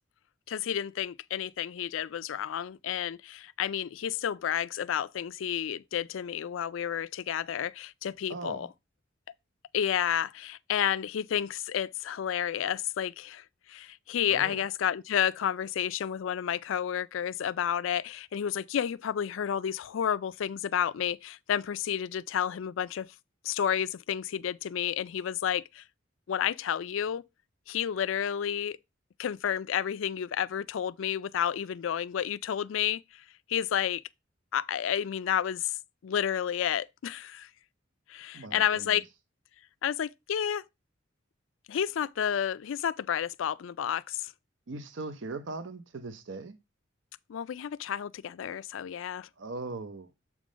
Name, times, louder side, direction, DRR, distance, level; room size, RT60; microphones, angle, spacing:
voice 1, 0.5-8.7 9.7-23.1 23.4-25.8 26.3-27.2 27.7-28.8 29.2-33.2 33.5-34.0 34.5-35.8 36.0-37.5 38.1-39.0 39.8-40.6 41.7-44.3 47.3-49.3, left 9 dB, 80° left, 0.4 m, -31 dB
voice 2, 8.3-8.7 14.3-14.6 38.3-39.0 44.7-46.6 49.4-50.1, right 3 dB, 70° right, 0.7 m, -39 dB
7.4 x 3.6 x 5.0 m
head